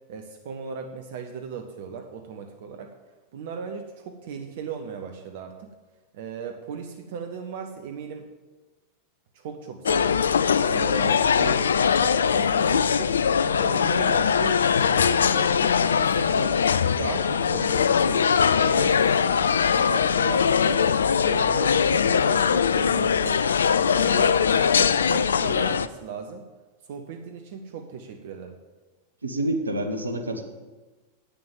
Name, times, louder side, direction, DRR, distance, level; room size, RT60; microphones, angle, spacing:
voice 1, 0.1-2.9 3.3-5.7 6.1-8.3 9.3-10.2 10.6-16.6 16.9-19.4 19.7-20.8 21.2-23.4 23.9-26.4 26.9-28.6, right 6 dB, 55° right, 5 dB, 0.8 m, -37 dB
sound 1, 9.9-25.9, left 7 dB, 70° left, 0.3 m, -21 dB
voice 2, 29.2-30.4, right 1 dB, 80° right, 5 dB, 1.1 m, -27 dB
8.8 x 6.8 x 7.4 m, 1.3 s
figure-of-eight pair, 90°, 0 cm